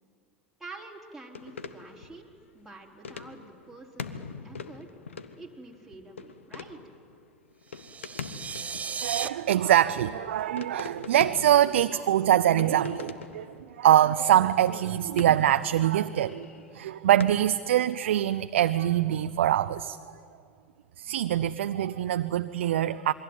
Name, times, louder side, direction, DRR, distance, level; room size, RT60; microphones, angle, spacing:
voice 1, 0.6-2.3 2.5-4.9 5.4-6.8, right 3 dB, ahead, 4.3 m, -47 dB
sound 1, 1.3-17.3, left 6 dB, 85° left, 1.2 m, -43 dB
sound 2, 7.7-9.3, right 6 dB, 20° right, 1.2 m, -35 dB
voice 2, 9.0-20.2 21.0-23.1, right 11 dB, 75° right, 0.6 m, -24 dB
27.5 x 22.0 x 9.1 m
hypercardioid pair, 85°, 7 cm